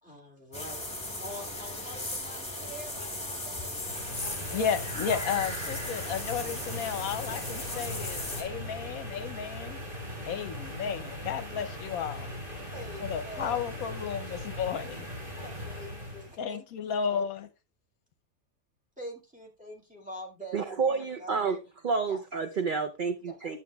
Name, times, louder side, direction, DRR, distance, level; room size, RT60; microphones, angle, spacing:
voice 1, 0.0-4.6 5.1-5.3 7.3-7.8 12.7-13.6 15.4-16.8 17.1-17.3 19.0-21.6 22.1-22.2 23.2-23.4, equal, 5° right, 1.9 m, -45 dB
sound 1, 0.5-8.4, left 1 dB, 15° left, 2.6 m, -37 dB
sound 2, 3.7-16.4, left 1 dB, 35° right, 2.7 m, -39 dB
voice 2, 4.5-9.8 10.3-12.3 13.0-15.0 16.4-17.5, left 7 dB, 75° left, 1.1 m, -33 dB
voice 3, 20.5-21.6 21.8-23.6, right 5 dB, 60° right, 0.5 m, -29 dB
11.5 x 7.2 x 2.3 m
omnidirectional pair, 1.6 m